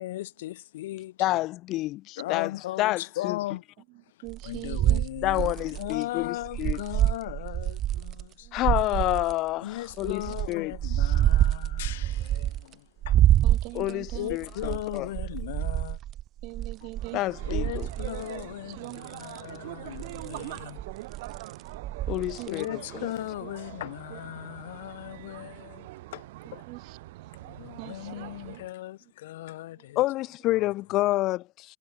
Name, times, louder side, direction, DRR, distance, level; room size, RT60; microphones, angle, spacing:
voice 1, 0.0-1.4 2.2-3.6 4.4-8.5 9.6-13.2 14.1-16.0 17.4-20.8 22.5-26.6 27.4-30.0 30.5-30.7, left 15 dB, 85° left, 1.9 m, -37 dB
voice 2, 1.2-2.5 2.8-3.4 5.2-6.8 8.5-10.7 13.7-15.1 17.1-17.9 22.1-22.8 30.0-31.8, left 17 dB, 40° left, 1.1 m, -28 dB
voice 3, 3.9-5.1 8.4-8.6 9.6-9.7 10.3-10.4 12.1-12.5 13.4-14.3 16.4-17.2 18.5-19.0 19.4-19.6 22.4-22.6 22.9-23.1 23.4-23.5 24.1-24.2 26.7-27.0 27.2-27.3 27.8-28.6 29.7-29.9, right 27 dB, 45° right, 3.6 m, -44 dB
sound 1, 4.3-8.2 8.6-9.3 9.9-12.7 13.0-18.5 18.9-19.4 19.9-22.6, right 12 dB, 30° right, 0.7 m, -27 dB
sound 2, 16.9-28.7, right 19 dB, 70° right, 1.1 m, -43 dB
supercardioid pair, 160°, 0 cm